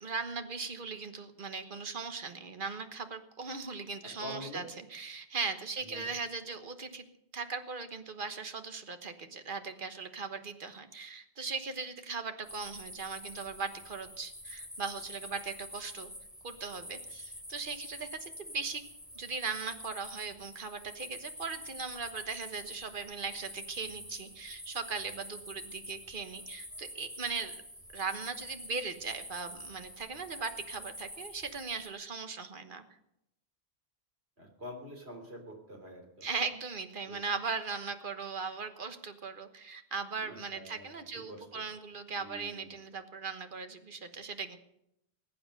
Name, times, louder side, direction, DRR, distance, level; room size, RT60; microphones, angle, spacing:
voice 1, 0.0-4.6 4.9-7.1 7.3-16.1 16.4-18.8 19.1-27.5 27.9-32.8 36.2-44.6, right 4 dB, 55° right, 8 dB, 1.4 m, -39 dB
voice 2, 4.0-4.6 5.8-6.1 34.4-36.3 37.1-37.2 40.2-41.0 41.3-41.6 42.2-42.7, equal, 80° right, 3 dB, 3.6 m, -46 dB
sound 1, 12.4-31.9, equal, ahead, 4.0 m, -47 dB
20.5 x 8.8 x 6.6 m, 0.80 s
omnidirectional pair, 1.1 m